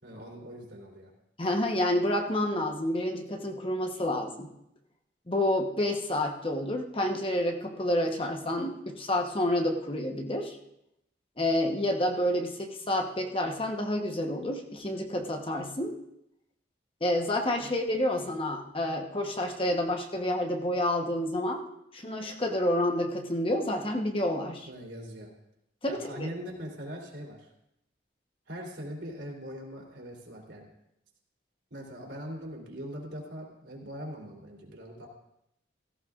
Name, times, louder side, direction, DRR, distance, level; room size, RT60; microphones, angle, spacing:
voice 1, 0.0-1.1 17.6-17.7 24.6-25.3 25.9-27.5 28.5-30.7 31.7-35.1, equal, 70° right, -1 dB, 3.3 m, -41 dB
voice 2, 1.4-4.5 5.3-10.6 11.4-16.0 17.0-21.6 21.9-24.7 25.8-26.3, left 1 dB, 30° left, 3 dB, 1.0 m, -29 dB
17.0 x 14.5 x 2.5 m, 0.80 s
head